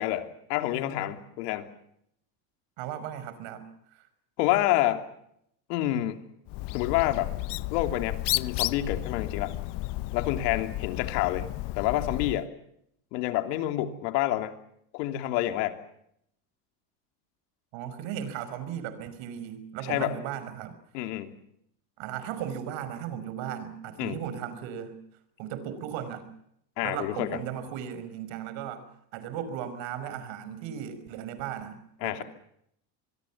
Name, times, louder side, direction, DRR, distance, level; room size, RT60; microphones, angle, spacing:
voice 1, 0.0-1.7 4.4-5.1 5.7-6.3 6.7-7.3 7.7-9.6 10.1-11.5 11.8-12.5 13.1-14.6 14.9-15.8 19.8-20.2 20.9-21.3 24.0-24.2 26.8-27.4 32.0-32.2, left 14 dB, 80° left, 8 dB, 3.1 m, -28 dB
voice 2, 2.8-3.6 3.9-4.1 17.7-20.8 22.0-25.0 25.4-26.3 26.8-28.9 29.1-32.2, right 9 dB, 70° right, 13 dB, 5.4 m, -36 dB
Bird, 6.5-12.5, left 18 dB, 55° left, 1.0 m, -33 dB
26.0 x 22.5 x 7.3 m, 0.73 s
supercardioid pair, 105°, 48 cm